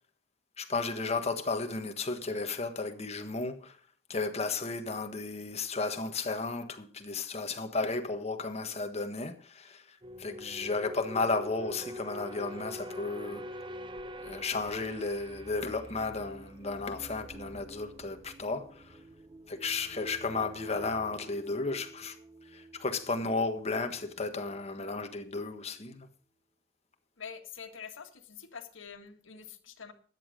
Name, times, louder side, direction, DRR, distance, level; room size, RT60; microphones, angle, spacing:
voice 1, 0.6-3.8 4.1-13.4 14.2-19.0 19.5-22.2 22.4-26.1, left 3 dB, 35° left, 1.5 m, -34 dB
sound 1, 10.0-24.7 24.9-25.2, equal, 25° right, 0.7 m, -46 dB
voice 2, 27.2-29.9, left 6 dB, 80° left, 1.8 m, -46 dB
13.5 x 9.6 x 5.2 m
head